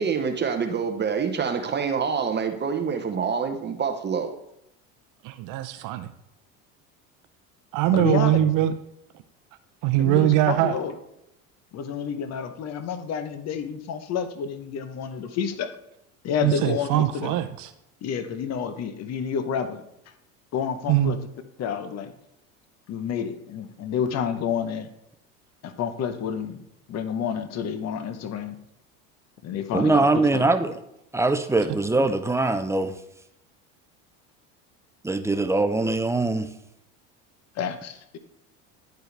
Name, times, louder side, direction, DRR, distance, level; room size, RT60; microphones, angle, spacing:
voice 1, 0.0-4.3, right 6 dB, 30° right, 6 dB, 0.8 m, -26 dB
voice 2, 5.2-6.1 7.7-8.7 9.8-10.7 16.4-17.7 20.9-21.1, right 13 dB, 55° right, 10 dB, 0.6 m, -22 dB
voice 3, 7.9-8.4 10.0-11.0 11.7-15.7 16.2-17.4 18.0-19.8 20.5-21.2 21.6-22.1 22.9-24.9 25.6-26.6 26.9-28.6 29.4-30.5 37.5-38.2, left 7 dB, 45° left, 10 dB, 0.9 m, -29 dB
voice 4, 29.7-30.7 31.1-32.9 35.0-36.5, right 2 dB, 10° right, 9 dB, 0.4 m, -22 dB
10.5 x 4.5 x 3.3 m, 0.81 s
supercardioid pair, 95°, 38 cm